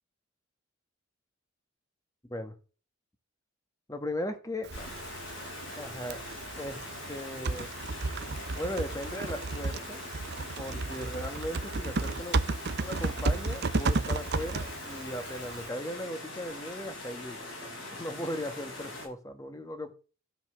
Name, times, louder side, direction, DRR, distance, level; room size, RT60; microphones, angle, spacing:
voice 1, 2.2-2.5 3.9-4.9 5.7-6.2 6.6-6.8 7.1-7.7 8.5-10.0 10.6-12.4 12.8-17.5 17.9-19.9, left 1 dB, 15° left, 8 dB, 1.6 m, -37 dB
Typing, 4.6-15.7, right 3 dB, 55° right, 0.7 m, -33 dB
sound 1, 4.7-19.1, left 2 dB, 60° left, 5.9 m, -42 dB
13.5 x 5.8 x 6.9 m, 0.36 s
head